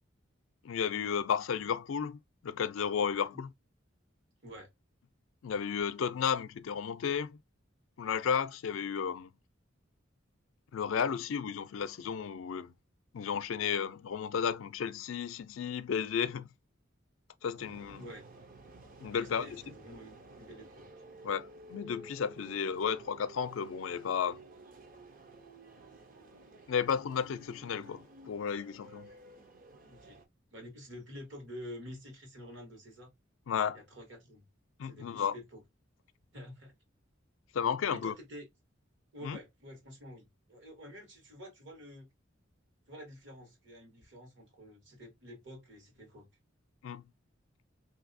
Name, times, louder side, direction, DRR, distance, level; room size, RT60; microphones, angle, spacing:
voice 1, 0.6-3.5 5.4-7.4 8.0-9.3 10.7-12.7 13.1-16.5 17.4-18.0 19.0-19.5 21.2-24.4 26.7-29.1 33.5-33.8 34.8-35.3 37.5-38.1 39.2-39.4 46.8-47.0, left 7 dB, 90° left, 0.4 m, -33 dB
sound 1, 17.6-30.3, right 2 dB, 45° right, 0.6 m, -53 dB
voice 2, 18.0-18.3 19.1-20.8 29.9-30.2 30.5-33.1 33.7-34.4 34.8-35.6 36.3-36.7 37.9-38.5 39.1-42.1 42.9-46.3, equal, 65° right, 1.4 m, -48 dB
3.3 x 2.6 x 2.5 m
head